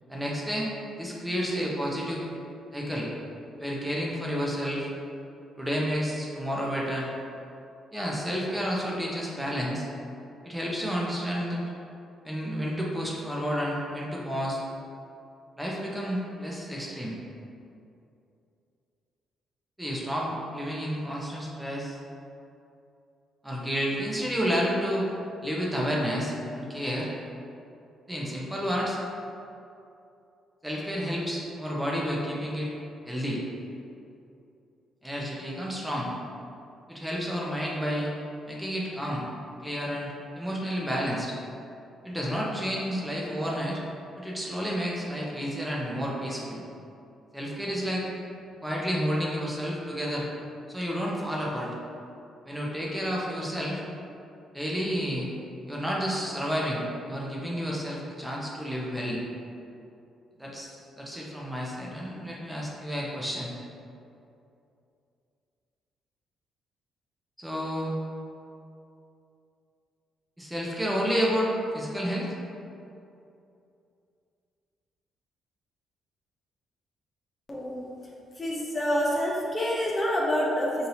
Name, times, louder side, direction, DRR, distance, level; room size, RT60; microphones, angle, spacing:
voice 1, 0.1-2.2 2.7-3.1 3.6-4.9 5.6-7.1 7.9-9.9 10.4-11.6 12.2-14.6 15.6-17.2 19.8-22.0 23.4-25.1 25.4-27.1 28.1-29.0 30.6-32.7 33.1-33.4 35.0-36.1 36.9-38.1 38.5-39.3 39.6-41.3 42.0-43.8 44.2-46.6 47.3-48.1 48.6-50.3 50.7-51.7 52.5-53.8 54.5-55.3 55.7-59.2 60.4-63.5 67.4-67.9 70.4-72.3, equal, 10° right, -4 dB, 0.7 m, -30 dB
voice 2, 77.5-77.8 78.4-80.9, equal, 25° left, -4 dB, 0.7 m, -27 dB
5.5 x 2.8 x 2.7 m, 2.6 s
cardioid pair, 90°, 0 cm